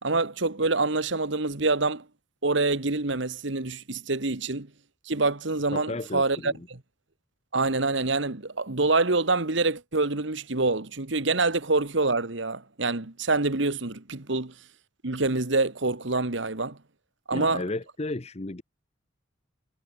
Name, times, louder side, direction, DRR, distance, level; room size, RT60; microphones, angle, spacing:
voice 1, 0.0-2.0 2.4-4.7 5.0-6.8 7.5-14.5 15.0-16.8 17.3-17.6, right 3 dB, 65° right, 1.6 m, -26 dB
voice 2, 5.7-6.7 17.3-18.6, left 2 dB, 30° left, 0.8 m, -34 dB
head